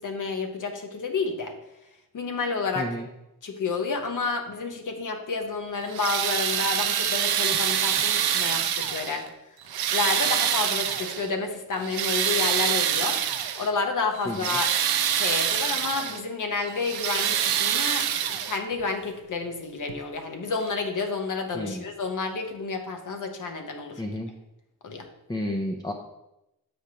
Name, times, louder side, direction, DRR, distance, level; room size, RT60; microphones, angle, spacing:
voice 1, 0.0-1.5 2.1-2.9 3.4-9.2 9.9-13.2 13.6-14.7 15.1-24.0 24.8-25.0, left 4 dB, 55° left, 4 dB, 0.9 m, -30 dB
voice 2, 2.8-3.1 14.3-14.6 21.5-21.8 24.0-24.3 25.3-25.9, left 1 dB, 10° left, 2 dB, 0.4 m, -31 dB
sound 1, 5.8-9.3 9.7-11.3 11.7-13.7 14.1-16.2 16.7-18.8 19.9-20.0 20.6-20.7, right 9 dB, 80° right, 0.6 m, -26 dB
7.8 x 4.9 x 2.8 m, 0.91 s
cardioid pair, 105°, 37 cm